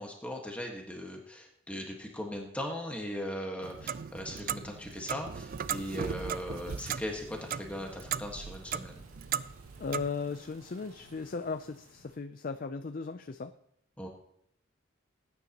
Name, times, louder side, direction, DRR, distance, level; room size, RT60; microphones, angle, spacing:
voice 1, 0.0-9.0 14.0-14.1, equal, 5° left, 0 dB, 1.5 m, -39 dB
Clock, 3.6-10.1, right 8 dB, 40° right, 0.3 m, -37 dB
sound 1, 5.5-12.2, right 2 dB, 85° right, 2.4 m, -55 dB
voice 2, 9.8-13.5, left 4 dB, 40° left, 9 dB, 0.4 m, -37 dB
19.0 x 9.7 x 2.9 m, 0.74 s
head